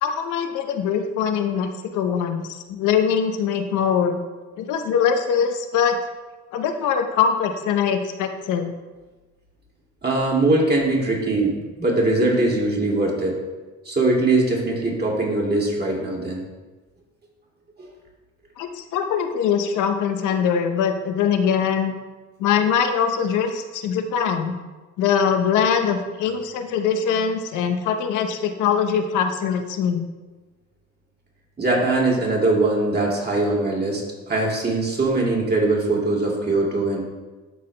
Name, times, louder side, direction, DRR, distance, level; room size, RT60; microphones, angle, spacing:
voice 1, 0.0-4.2 4.6-6.0 6.5-8.7 18.6-21.9 22.4-24.5 25.0-30.0, left 7 dB, 90° left, 7 dB, 0.7 m, -22 dB
voice 2, 10.0-13.4 13.9-16.4 17.8-17.9 31.6-37.0, right 2 dB, 35° right, -2 dB, 2.3 m, -21 dB
11.5 x 4.2 x 3.2 m, 1.2 s
cardioid pair, 90°, 30 cm